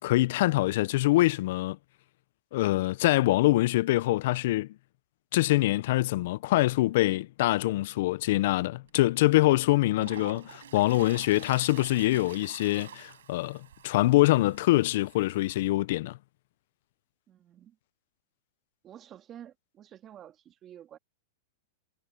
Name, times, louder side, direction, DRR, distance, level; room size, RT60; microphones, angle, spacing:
voice 1, 0.0-1.8 2.5-4.7 5.3-16.2, left 17 dB, 60° left, 0.5 m, -24 dB
Toilet flush, 8.9-9.0 9.5-15.7, right 10 dB, 85° right, 7.2 m, -48 dB
voice 2, 17.3-17.8 18.8-21.0, right 10 dB, 25° right, 2.4 m, -50 dB
hypercardioid pair, 140°, 0 cm